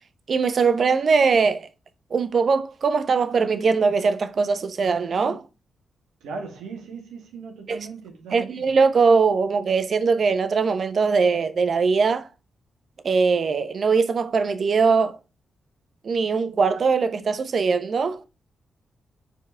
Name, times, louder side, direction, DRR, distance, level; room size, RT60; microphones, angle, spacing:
voice 1, 0.3-1.7 2.1-5.4 7.7-7.8 8.3-12.3 13.0-15.2 16.0-18.2, right 5 dB, 55° right, 0.8 m, -21 dB
voice 2, 6.2-8.7, right 4 dB, 80° right, 1.6 m, -38 dB
5.9 x 4.8 x 3.3 m
hypercardioid pair, 40°, 0 cm